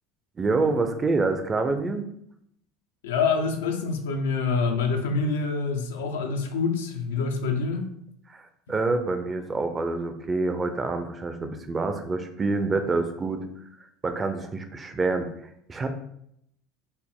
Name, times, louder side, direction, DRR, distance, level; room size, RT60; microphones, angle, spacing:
voice 1, 0.4-2.1 8.3-8.4 8.7-13.5 14.0-15.3 15.7-16.0, right 3 dB, 25° right, 7 dB, 0.5 m, -26 dB
voice 2, 3.0-7.9, left 4 dB, 90° left, 4 dB, 0.5 m, -26 dB
4.1 x 2.1 x 3.5 m, 0.72 s
supercardioid pair, 100°, 0 cm